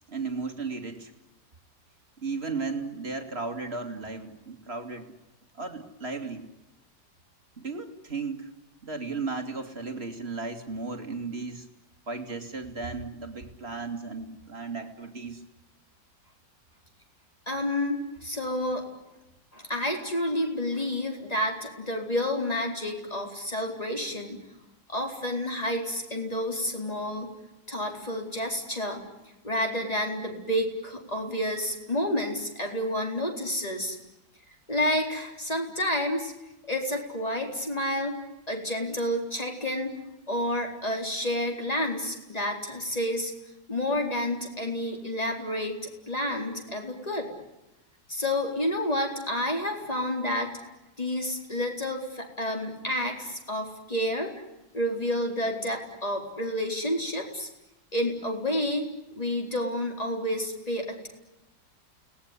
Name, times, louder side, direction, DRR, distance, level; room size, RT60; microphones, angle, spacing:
voice 1, 0.1-1.1 2.2-5.1 5.6-6.5 7.6-8.5 8.8-11.7 12.1-15.4, right 4 dB, 30° right, 5 dB, 2.7 m, -35 dB
voice 2, 17.5-18.9 19.5-24.4 24.9-27.3 27.7-29.1 29.4-34.0 34.7-36.3 36.7-38.2 38.5-39.9 40.3-43.3 43.7-45.8 46.1-47.3 48.1-50.5 51.0-54.3 54.7-57.5 57.9-58.9 59.1-61.1, left 1 dB, 20° left, 2 dB, 4.3 m, -29 dB
30.0 x 19.5 x 9.8 m, 0.97 s
omnidirectional pair, 2.1 m